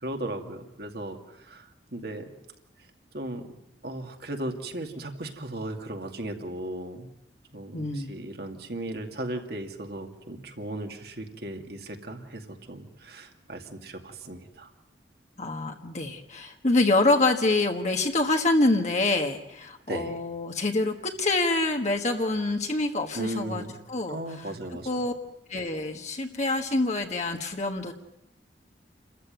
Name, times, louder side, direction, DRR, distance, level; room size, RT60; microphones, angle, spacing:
voice 1, 0.0-2.3 3.1-3.5 3.8-7.1 7.5-14.7 19.9-20.2 23.1-23.8 24.1-24.9, right 1 dB, 60° right, 4 dB, 2.5 m, -36 dB
voice 2, 7.7-8.1 15.4-24.5 24.8-25.1 25.5-27.9, left 2 dB, 40° left, 3 dB, 1.5 m, -26 dB
29.0 x 14.5 x 9.2 m, 0.86 s
head